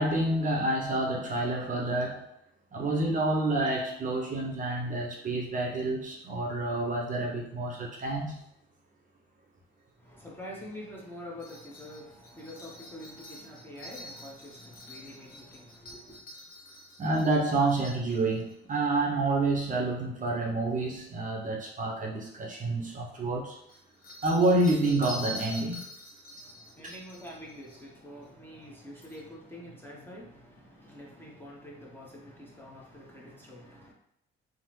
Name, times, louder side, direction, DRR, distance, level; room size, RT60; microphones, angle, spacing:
voice 1, 0.0-2.2 2.7-8.4 17.0-23.6 24.2-25.8, right 2 dB, 40° right, -1 dB, 0.7 m, -28 dB
voice 2, 10.0-16.3 26.4-33.9, equal, 10° left, -3 dB, 0.8 m, -46 dB
sound 1, 11.4-18.5 20.9-21.0 23.6-27.9 28.2-28.3 29.0-29.2, left 1 dB, 50° left, 0.9 m, -46 dB
3.4 x 2.0 x 3.0 m, 0.77 s
cardioid pair, 90°, 20 cm